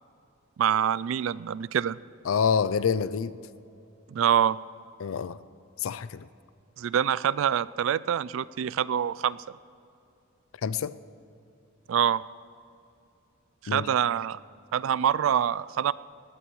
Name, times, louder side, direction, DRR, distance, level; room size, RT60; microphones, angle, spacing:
voice 1, 0.6-2.0 4.1-4.6 6.8-9.4 11.9-12.2 13.6-14.4 14.7-15.9, right 9 dB, 70° right, 19 dB, 0.3 m, -25 dB
voice 2, 2.3-3.3 5.0-5.4 5.8-6.3 10.6-10.9 13.7-13.9, left 6 dB, 80° left, 16 dB, 0.4 m, -27 dB
20.0 x 16.5 x 3.1 m, 2.7 s
head